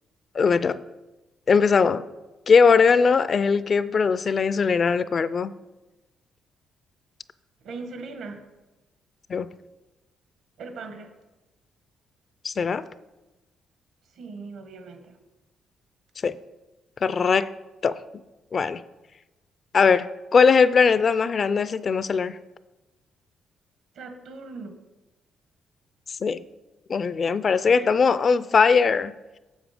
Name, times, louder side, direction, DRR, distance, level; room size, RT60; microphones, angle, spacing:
voice 1, 0.3-0.8 1.5-2.0 2.5-5.5 9.3-9.5 12.4-12.8 16.2-16.4 17.0-17.5 17.8-18.0 18.5-18.8 19.7-22.4 26.2-26.4 26.9-29.1, left 5 dB, 45° left, 16 dB, 0.4 m, -20 dB
voice 2, 7.6-8.4 10.6-11.1 14.1-15.2 23.9-24.8 27.6-28.0, right 3 dB, 75° right, 6 dB, 1.2 m, -39 dB
7.4 x 7.2 x 4.9 m, 1.1 s
cardioid pair, 90°, 0 cm